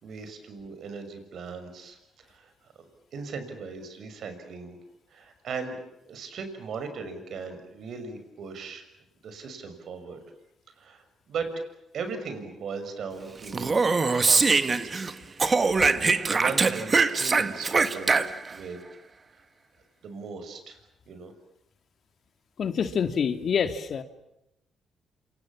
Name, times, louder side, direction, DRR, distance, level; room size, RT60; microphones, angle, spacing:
voice 1, 0.0-2.5 3.1-4.8 5.1-5.8 6.1-8.8 9.2-10.2 10.8-11.6 11.9-13.8 14.2-14.9 15.5-15.7 16.1-18.2 18.5-18.8 20.0-20.8 21.1-21.3, right 5 dB, 65° right, 8 dB, 6.2 m, -38 dB
Speech, 13.5-15.1 15.4-18.6, right 4 dB, 30° right, 1.7 m, -23 dB
voice 2, 22.6-24.0, left 7 dB, 55° left, 8 dB, 2.3 m, -26 dB
28.0 x 27.5 x 7.5 m, 0.86 s
cardioid pair, 90°, 0 cm